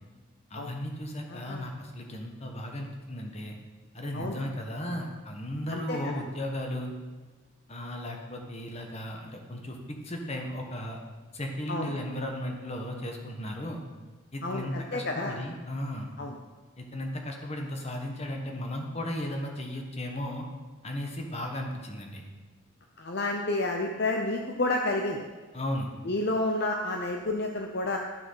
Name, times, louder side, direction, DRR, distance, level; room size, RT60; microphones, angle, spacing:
voice 1, 0.5-3.6 3.9-6.9 7.7-11.0 11.3-13.8 14.3-16.1 16.8-20.5 20.8-22.2 25.5-25.9, left 1 dB, 30° left, 2 dB, 1.3 m, -35 dB
voice 2, 1.3-1.7 4.1-4.4 5.7-6.0 11.7-11.9 14.4-15.4 16.2-16.4 23.0-25.2 26.0-28.0, left 2 dB, 50° left, 2 dB, 0.7 m, -30 dB
12.0 x 6.9 x 5.7 m, 1.3 s
head